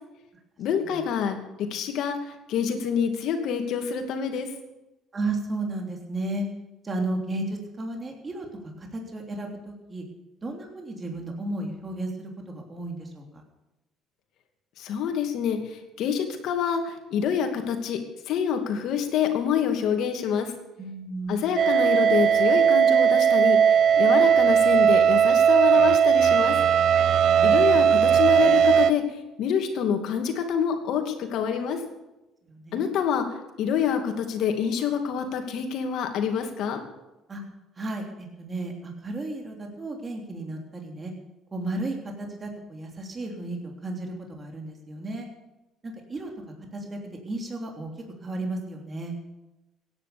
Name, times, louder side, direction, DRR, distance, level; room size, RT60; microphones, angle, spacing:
voice 1, 0.6-1.4 1.7-2.2 2.5-4.5 14.8-15.6 16.0-18.0 18.3-20.5 21.3-23.6 24.0-26.5 27.4-29.0 29.4-31.8 32.7-33.2 33.6-36.8, left 8 dB, 70° left, 5 dB, 2.5 m, -26 dB
voice 2, 5.1-6.4 6.8-8.5 8.8-10.0 10.4-13.2 20.8-21.6 32.5-32.9 37.3-37.4 37.8-41.1 41.5-45.3 45.8-46.3 46.7-47.0 47.2-47.9 48.2-49.1, right 2 dB, 30° right, 1 dB, 3.1 m, -33 dB
sound 1, 21.6-28.9, right 8 dB, 60° right, 0.8 m, -18 dB
17.0 x 10.0 x 6.9 m, 1.0 s
cardioid pair, 95°, 0 cm